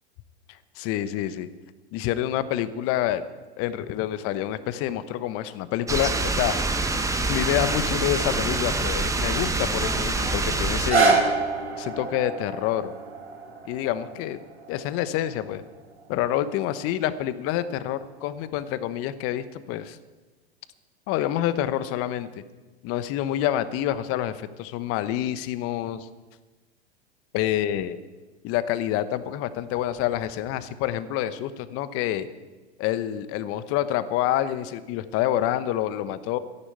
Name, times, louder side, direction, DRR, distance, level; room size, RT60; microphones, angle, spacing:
voice 1, 0.7-1.5 1.9-3.2 3.6-6.5 7.3-11.2 11.8-12.9 13.6-14.4 14.7-15.6 16.1-20.0 21.1-22.3 22.8-26.1 27.3-28.0 28.4-32.3 32.8-36.4, left 12 dB, 45° left, 13 dB, 1.1 m, -27 dB
sound 1, 5.9-10.9, right 3 dB, 10° right, 1.3 m, -25 dB
sound 2, 10.6-16.7 17.4-17.5, right 4 dB, 85° right, 4.5 m, -27 dB
13.0 x 11.0 x 8.6 m, 1.3 s
hypercardioid pair, 95°, 33 cm